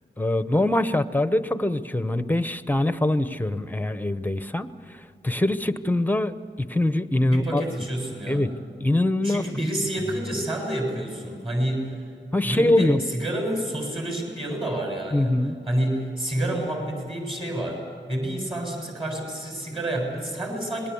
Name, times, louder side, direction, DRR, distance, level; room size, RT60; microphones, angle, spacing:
voice 1, 0.2-4.7 5.2-7.6 8.3-8.5 8.8-9.4 12.3-13.0 15.1-15.5, left 1 dB, 10° left, 12 dB, 0.9 m, -23 dB
voice 2, 7.3-8.5 9.2-12.0 12.4-15.3 15.7-17.8 18.1-20.9, right 1 dB, 25° right, 0 dB, 7.4 m, -29 dB
26.0 x 21.0 x 7.2 m, 2.3 s
wide cardioid pair, 80°, 20 cm